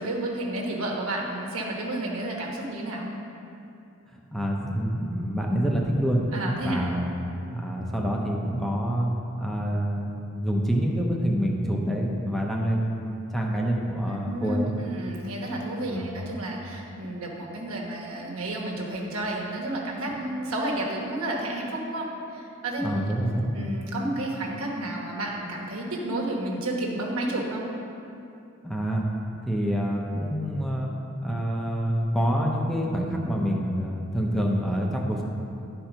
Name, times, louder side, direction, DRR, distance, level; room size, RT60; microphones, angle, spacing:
voice 1, 0.0-3.1 6.3-6.8 14.1-22.8 23.5-27.7, right 1 dB, 90° right, -2 dB, 1.3 m, -31 dB
voice 2, 4.3-6.2 6.6-7.1 7.5-9.1 9.4-14.7 15.9-16.1 22.8-23.5 28.6-29.0 29.5-31.0 31.2-35.2, equal, ahead, -2 dB, 0.7 m, -27 dB
10.5 x 4.5 x 5.0 m, 2.7 s
head